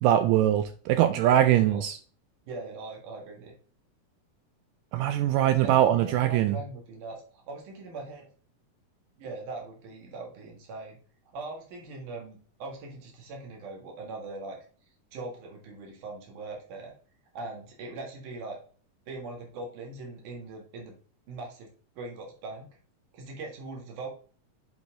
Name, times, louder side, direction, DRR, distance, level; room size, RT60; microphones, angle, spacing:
voice 1, 0.0-2.0 4.9-6.6, right 12 dB, 80° right, 2.1 m, -22 dB
voice 2, 1.1-1.8 2.4-3.5 5.6-8.3 9.2-11.0 11.3-14.6 15.1-16.9 17.3-18.6 19.1-20.9 21.3-21.7 22.0-22.7 23.1-24.1, right 3 dB, 65° right, 3.3 m, -41 dB
8.3 x 4.1 x 3.7 m
omnidirectional pair, 4.0 m